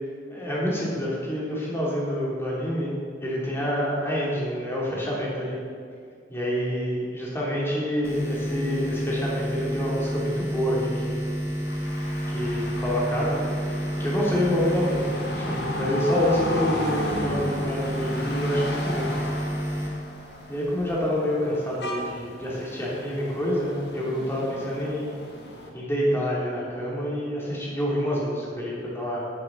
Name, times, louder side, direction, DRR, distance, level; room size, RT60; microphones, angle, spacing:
voice 1, 0.3-2.9 3.2-5.6 6.3-11.2 12.3-13.4 13.7-19.1 20.5-25.1 25.7-29.2, equal, 15° left, -5 dB, 3.1 m, -27 dB
sound 1, 8.0-21.0, equal, 15° right, 1.6 m, -31 dB
sound 2, 11.7-25.7, left 1 dB, 65° left, 1.7 m, -35 dB
9.0 x 8.4 x 7.7 m, 2.2 s
head